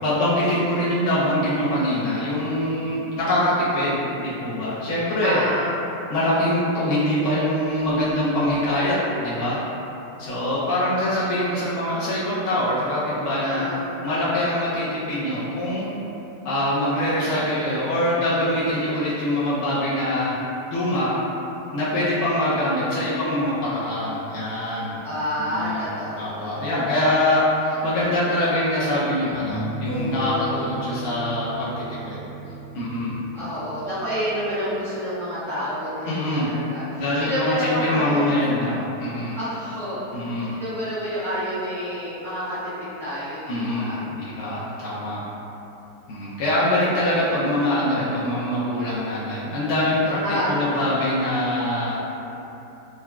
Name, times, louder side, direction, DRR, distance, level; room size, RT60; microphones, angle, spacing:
voice 1, 0.0-5.4 6.1-9.6 10.2-13.6 14.0-15.9 16.4-20.4 20.7-21.1 21.7-24.9 25.5-25.9 26.2-32.2 32.7-33.1 36.0-36.5 37.0-39.4 40.1-40.5 43.5-45.2 46.1-50.2 50.5-52.0, left 1 dB, 70° left, -10 dB, 0.7 m, -24 dB
voice 2, 5.2-5.7 13.4-13.9 25.0-27.0 33.3-38.3 39.0-39.1 39.3-44.1 44.4-44.9 50.2-50.6 51.4-51.7, equal, 5° left, -14 dB, 0.3 m, -29 dB
sound 1, 29.3-34.5, right 1 dB, 75° right, 1.1 m, -34 dB
3.8 x 2.2 x 2.3 m, 3.0 s
omnidirectional pair, 1.8 m